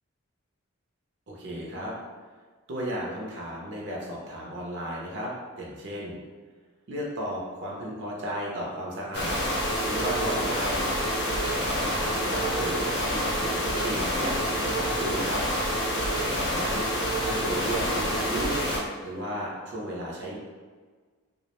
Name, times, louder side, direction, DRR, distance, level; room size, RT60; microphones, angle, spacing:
voice 1, 1.3-1.9 2.7-6.2 6.9-10.9 11.5-12.8 13.0-15.4 16.2-16.9 17.2-18.5 19.0-20.4, equal, 55° right, -3 dB, 0.5 m, -34 dB
sound 1, 9.1-18.8, equal, 50° left, 0.6 m, -27 dB
2.3 x 2.1 x 2.9 m, 1.5 s
head